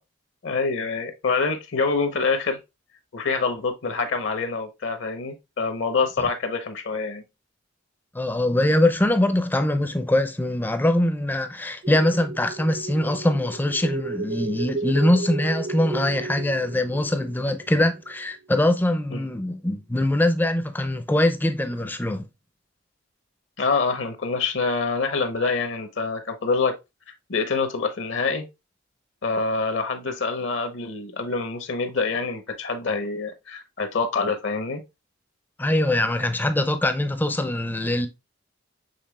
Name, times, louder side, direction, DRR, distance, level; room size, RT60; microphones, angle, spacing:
voice 1, 0.4-2.6 3.1-7.2 19.1-19.3 23.6-26.8 27.3-28.5 29.2-34.8, left 4 dB, 70° left, 0.8 m, -26 dB
voice 2, 8.1-22.3 35.6-38.1, left 1 dB, 10° left, 0.4 m, -23 dB
sound 1, 11.8-18.3, right 3 dB, 55° right, 0.4 m, -34 dB
6.6 x 3.5 x 2.2 m
head